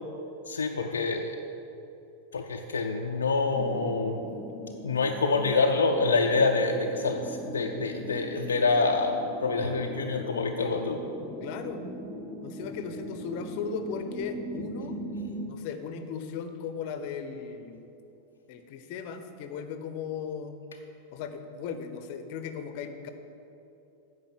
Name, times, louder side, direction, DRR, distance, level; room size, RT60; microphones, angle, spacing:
voice 1, 0.5-1.4 2.3-4.2 4.8-11.0, left 3 dB, 70° left, 3 dB, 0.5 m, -26 dB
sound 1, 3.5-15.5, equal, 10° right, 1.0 m, -40 dB
voice 2, 11.2-11.8 12.4-15.0 15.5-17.8 18.5-20.6 21.1-23.1, left 6 dB, 45° left, 8 dB, 0.7 m, -37 dB
9.2 x 5.3 x 7.4 m, 2.8 s
figure-of-eight pair, 90°, 0 cm